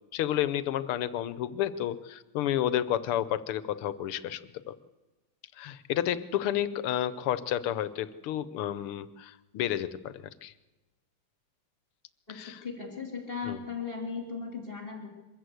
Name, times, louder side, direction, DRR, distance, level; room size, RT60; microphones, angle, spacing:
voice 1, 0.1-4.4 4.7-4.8 5.6-10.5 12.3-12.6 13.5-13.6, left 11 dB, 85° left, 15 dB, 1.8 m, -31 dB
voice 2, 12.3-15.1, left 5 dB, 25° left, 1 dB, 3.7 m, -37 dB
23.5 x 14.0 x 8.2 m, 1.1 s
omnidirectional pair, 2.4 m